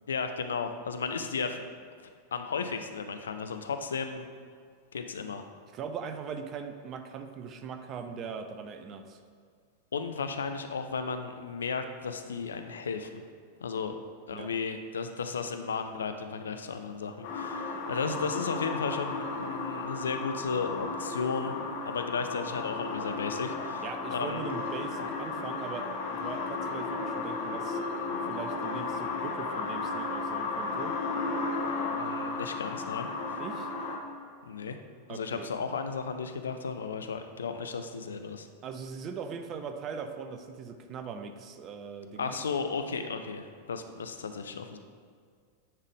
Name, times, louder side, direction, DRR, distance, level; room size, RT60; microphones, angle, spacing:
voice 1, 0.1-1.7 2.3-4.3 4.9-5.5 9.9-13.3 13.6-14.0 14.3-21.6 21.9-24.4 25.0-25.1 32.0-33.1 34.4-34.8 35.1-38.5 42.2-44.8, left 5 dB, 70° left, 8 dB, 0.4 m, -34 dB
voice 2, 5.7-9.2 14.3-14.5 23.8-27.8 28.1-30.9 33.3-33.7 35.1-35.5 38.6-42.4, right 6 dB, 35° right, 7 dB, 0.5 m, -40 dB
sound 1, 17.2-34.0, left 3 dB, 50° left, 0.9 m, -34 dB
9.5 x 3.7 x 3.4 m, 2.1 s
figure-of-eight pair, 90°, 0 cm